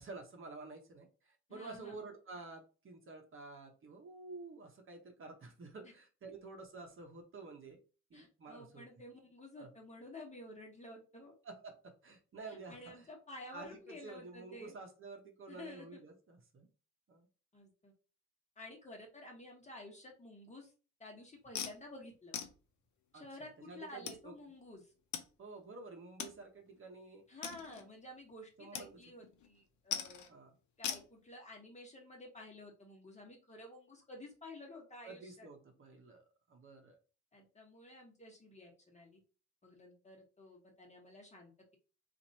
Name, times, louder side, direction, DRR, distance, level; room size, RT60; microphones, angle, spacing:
voice 1, 0.0-7.8 8.1-8.9 9.6-9.7 11.4-13.0 13.5-16.7 17.1-17.3 23.1-24.3 25.4-27.3 28.6-29.0 30.3-30.5 35.0-37.0, right 3 dB, 45° right, 3 dB, 0.9 m, -50 dB
voice 2, 1.5-2.0 5.8-5.9 8.1-11.3 12.5-14.7 15.5-16.0 17.5-17.9 18.6-20.7 21.0-22.4 23.1-24.9 27.3-30.2 30.8-35.5 37.3-39.2 39.6-41.8, left 1 dB, 25° left, 0 dB, 1.4 m, -52 dB
sound 1, 21.5-21.8 22.3-22.5 23.4-23.5 24.1-24.2 25.1-25.2 25.6-25.7 26.2-26.4 26.8-26.9 27.4-27.9 28.7-28.9 29.2-29.5 29.9-30.3 30.8-31.1, left 8 dB, 75° left, 0.7 m, -40 dB
2.9 x 2.6 x 4.0 m, 0.35 s
cardioid pair, 90°, 30 cm